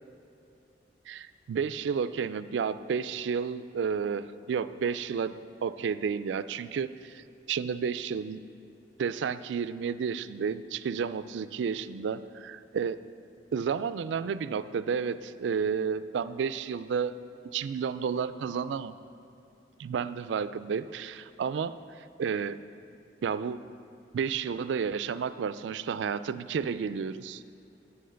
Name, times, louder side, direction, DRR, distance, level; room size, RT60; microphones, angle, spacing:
voice 1, 1.1-5.3 5.6-8.4 9.0-13.0 13.5-17.1 17.4-19.0 19.8-21.8 22.2-22.6 23.2-23.6 24.1-27.4, right 6 dB, 80° right, 14 dB, 0.3 m, -31 dB
8.3 x 7.9 x 6.3 m, 2.7 s
head